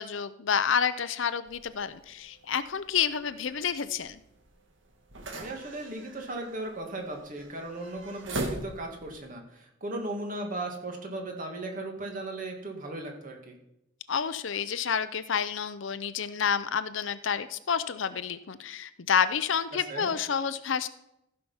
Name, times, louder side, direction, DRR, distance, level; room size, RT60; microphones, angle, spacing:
voice 1, 0.0-4.2 14.1-20.9, left 7 dB, 85° left, 13 dB, 0.6 m, -29 dB
sound 1, 1.5-9.2, right 1 dB, 75° right, 1.7 m, -42 dB
voice 2, 5.3-13.6 19.7-20.1, right 2 dB, 45° right, 2 dB, 2.1 m, -37 dB
15.0 x 5.8 x 5.6 m, 0.83 s
head